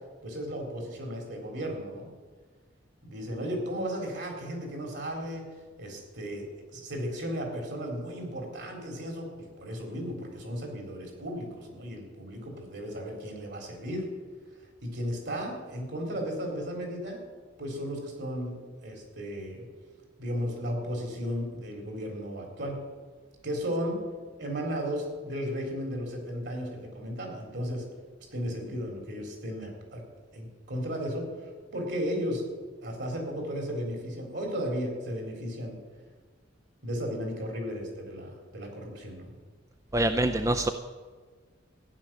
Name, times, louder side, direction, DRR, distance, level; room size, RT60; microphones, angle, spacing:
voice 1, 0.2-2.1 3.0-5.5 5.8-14.1 14.8-17.2 17.6-19.6 20.2-22.8 23.4-24.0 24.4-27.8 28.3-30.0 30.3-31.3 31.7-32.4 32.8-35.8 36.8-39.3, equal, 60° right, 2 dB, 4.1 m, -35 dB
voice 2, 39.9-40.7, right 1 dB, 15° right, 8 dB, 0.5 m, -25 dB
14.5 x 10.5 x 7.7 m, 1.4 s
head